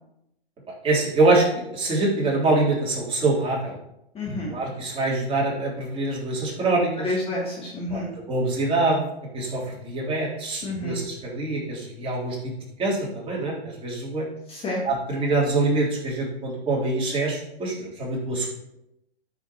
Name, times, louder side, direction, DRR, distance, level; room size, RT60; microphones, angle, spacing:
voice 1, 0.8-3.8 4.5-7.1 7.9-12.5 12.8-14.3 14.8-18.5, right 2 dB, 15° right, -6 dB, 3.5 m, -25 dB
voice 2, 4.1-4.5 7.0-8.1 10.6-11.0 14.5-14.8, left 1 dB, 20° left, -3 dB, 1.8 m, -29 dB
13.0 x 6.7 x 3.0 m, 0.84 s
figure-of-eight pair, 115°, 32 cm